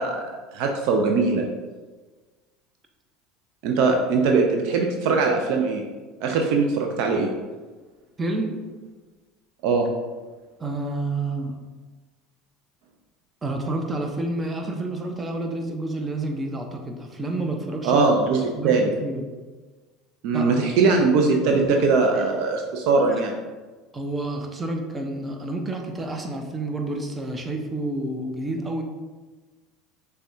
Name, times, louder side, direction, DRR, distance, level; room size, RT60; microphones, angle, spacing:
voice 1, 0.0-1.4 3.6-5.8 6.2-7.3 9.6-9.9 17.8-18.9 20.2-23.3, right 4 dB, 60° right, 2 dB, 0.4 m, -21 dB
voice 2, 8.2-8.6 10.6-11.6 13.4-18.1 18.6-19.2 20.3-20.5 20.8-21.6 23.9-28.8, right 2 dB, 20° right, 3 dB, 0.7 m, -29 dB
6.6 x 2.3 x 2.7 m, 1.3 s
hypercardioid pair, 70°, 0 cm